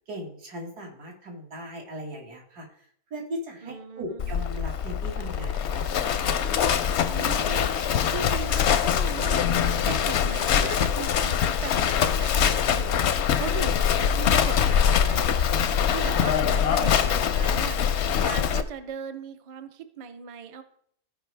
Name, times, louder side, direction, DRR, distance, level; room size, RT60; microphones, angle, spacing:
voice 1, 0.1-2.7 3.1-6.2, equal, 80° right, 0 dB, 2.4 m, -38 dB
voice 2, 3.6-4.4 7.1-9.4 9.8-17.8 18.2-20.6, right 6 dB, 55° right, 8 dB, 0.3 m, -38 dB
Livestock farm animals working animals, 4.2-18.6, left 8 dB, 65° left, 0.7 m, -23 dB
14.5 x 5.2 x 3.3 m, 0.64 s
omnidirectional pair, 1.6 m